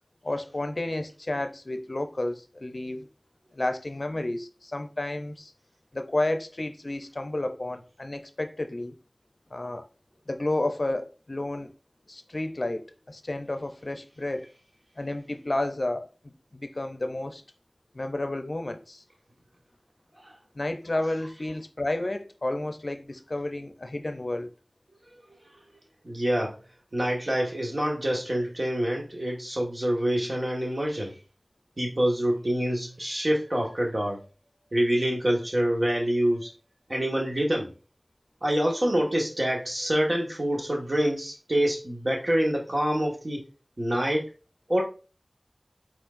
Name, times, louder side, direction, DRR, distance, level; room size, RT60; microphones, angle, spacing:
voice 1, 0.2-3.1 3.5-5.5 5.9-9.0 9.5-9.9 10.3-11.7 12.1-14.5 15.0-17.4 17.9-19.0 20.5-24.5, left 2 dB, 65° left, 0.5 m, -31 dB
voice 2, 26.0-26.5 26.9-31.1 31.8-34.3 34.7-36.5 36.9-37.7 38.4-43.4 43.8-44.3 44.7-44.8, equal, 60° right, 1.3 m, -26 dB
4.4 x 4.3 x 2.5 m
wide cardioid pair, 50°, 0 cm